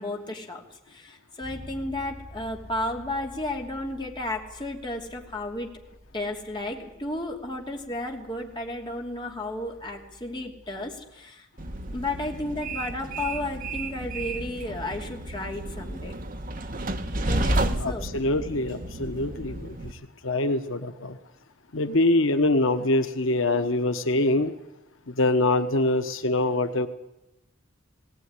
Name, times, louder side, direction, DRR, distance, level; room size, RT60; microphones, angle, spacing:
voice 1, 0.0-5.7 6.1-11.5 11.9-16.1 17.2-18.1, left 1 dB, 25° left, 1 dB, 2.8 m, -33 dB
Bass guitar, 1.4-11.2, equal, 25° right, 5.8 m, -49 dB
Train, 11.6-19.9, right 1 dB, 45° right, 1.2 m, -31 dB
voice 2, 17.8-19.8 20.2-21.2 21.7-24.5 25.1-26.9, left 2 dB, 85° left, 8 dB, 1.2 m, -24 dB
19.0 x 18.0 x 9.7 m, 0.92 s
head